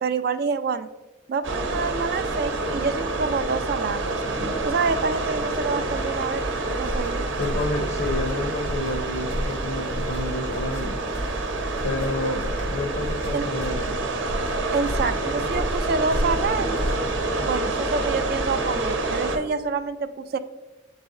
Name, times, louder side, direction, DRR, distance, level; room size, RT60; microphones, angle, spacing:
voice 1, 0.0-0.9 1.3-4.2 4.6-6.4 6.7-7.2 13.3-13.5 14.7-16.8 17.4-20.4, right 4 dB, 50° right, 11 dB, 0.3 m, -27 dB
sound 1, 1.4-19.4, right 2 dB, 75° right, 0.9 m, -27 dB
sound 2, 6.8-17.4, equal, 90° left, 1.5 m, -33 dB
voice 2, 7.4-11.0 11.8-14.1, left 2 dB, 55° left, 4 dB, 0.6 m, -30 dB
8.1 x 4.1 x 3.7 m, 1.1 s
head